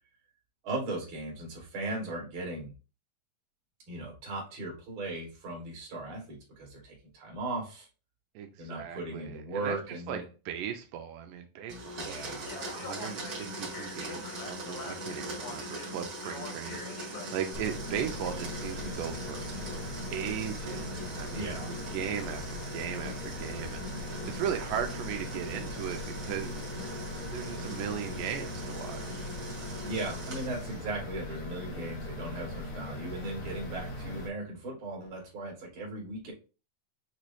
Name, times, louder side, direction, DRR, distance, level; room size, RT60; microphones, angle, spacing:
voice 1, 0.6-2.7 3.9-7.9 8.6-10.2 11.9-12.5 21.3-21.7 29.9-36.3, right 2 dB, 45° right, -1 dB, 2.2 m, -37 dB
voice 2, 8.4-9.8 10.1-10.2 10.5-19.4 20.1-21.6 21.9-26.9 27.3-29.3, right 9 dB, 85° right, 5 dB, 2.2 m, -37 dB
Domestic sounds home sounds, 11.7-30.9, right 1 dB, 60° right, 0.9 m, -41 dB
Speech, 12.4-17.7, left 4 dB, 75° left, 2.7 m, -45 dB
sound 1, 17.5-34.3, left 1 dB, 55° left, 1.5 m, -40 dB
6.6 x 3.1 x 2.6 m, 0.33 s
omnidirectional pair, 3.9 m